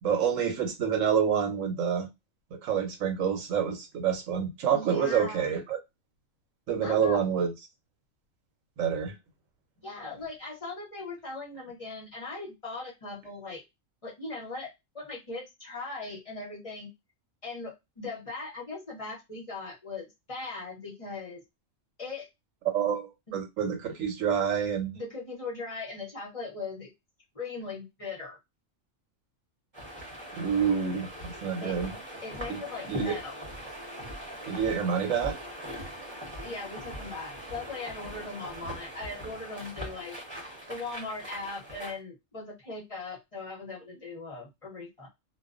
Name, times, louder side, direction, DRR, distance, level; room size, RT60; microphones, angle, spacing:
voice 1, 0.0-2.1 2.5-5.8 6.7-7.5 8.8-9.1 22.7-25.0 30.3-32.0 32.5-32.6 32.9-33.2 34.5-35.4, right 7 dB, 80° right, 5 dB, 1.1 m, -28 dB
voice 2, 4.7-5.5 6.8-7.2 9.8-13.6 14.0-14.7 14.9-16.9 17.4-21.4 22.0-22.3 23.3-23.4 24.9-26.9 27.3-28.4 31.6-31.7 32.2-33.4 36.4-40.2 40.7-45.1, left 3 dB, 30° left, -3 dB, 0.8 m, -39 dB
sound 1, 29.7-42.0, equal, 25° right, 0.8 m, -41 dB
2.3 x 2.2 x 2.4 m, 0.21 s
omnidirectional pair, 1.4 m